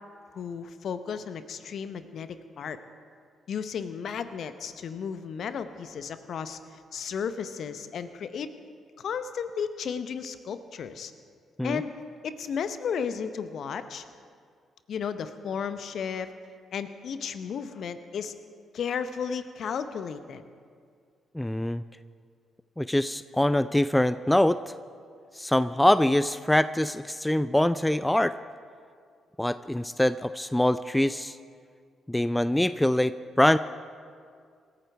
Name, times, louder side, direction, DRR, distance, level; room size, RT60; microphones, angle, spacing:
voice 1, 0.3-2.8 3.5-6.6 6.9-8.5 9.0-11.1 11.6-11.9 12.2-14.0 14.9-16.3 16.7-18.3 18.7-20.4, left 7 dB, 55° left, 11 dB, 0.9 m, -34 dB
voice 2, 21.3-21.8 22.8-24.6 25.4-28.3 29.4-31.4 32.1-33.6, left 1 dB, 10° left, 14 dB, 0.4 m, -24 dB
26.0 x 14.5 x 3.5 m, 2.1 s
figure-of-eight pair, 40°, 0 cm